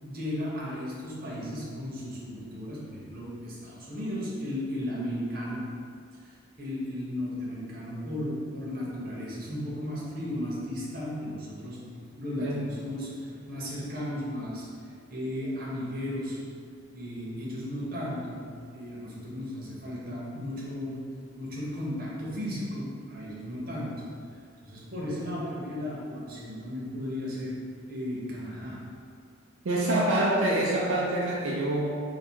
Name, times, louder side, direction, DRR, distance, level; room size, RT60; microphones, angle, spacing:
voice 1, 0.0-5.7 6.2-11.9 12.2-16.4 16.9-24.1 24.6-27.6 27.9-28.9, left 1 dB, 45° right, -6 dB, 0.9 m, -35 dB
voice 2, 29.6-31.9, right 1 dB, 75° right, -5 dB, 0.5 m, -26 dB
3.5 x 2.3 x 4.3 m, 2.2 s
head